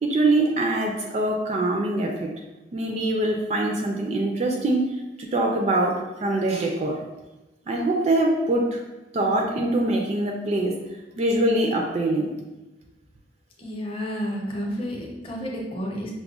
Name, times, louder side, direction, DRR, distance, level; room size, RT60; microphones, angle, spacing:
voice 1, 0.0-2.3 2.7-4.9 5.2-7.0 7.7-8.8 9.1-10.7 11.2-12.3, right 2 dB, 35° right, 1 dB, 0.3 m, -23 dB
voice 2, 13.6-16.1, equal, 30° left, -2 dB, 0.7 m, -31 dB
5.9 x 2.1 x 2.3 m, 1.1 s
head